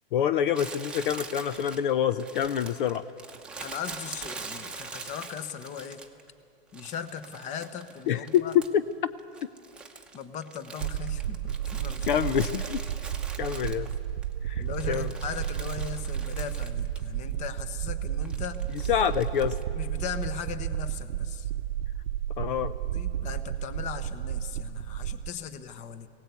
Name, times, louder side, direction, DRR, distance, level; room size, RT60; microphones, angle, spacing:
voice 1, 0.1-3.0 8.1-8.8 12.1-12.8 13.4-13.9 14.4-15.1 18.7-19.6 22.4-22.7, left 9 dB, 60° left, 13 dB, 0.7 m, -26 dB
Crumpling crinkling, 0.5-6.3 6.7-8.9 9.2-14.2 14.6-17.0 17.3-17.4 18.2-19.6, right 4 dB, 5° right, 1.0 m, -43 dB
voice 2, 3.6-6.0 6.7-8.6 10.1-12.2 14.6-18.9 19.7-21.5 22.9-26.1, left 7 dB, 25° left, 11 dB, 1.0 m, -38 dB
sound 1, 10.8-25.3, right 11 dB, 75° right, 0.8 m, -32 dB
20.0 x 17.5 x 8.3 m, 2.4 s
hypercardioid pair, 145°, 30 cm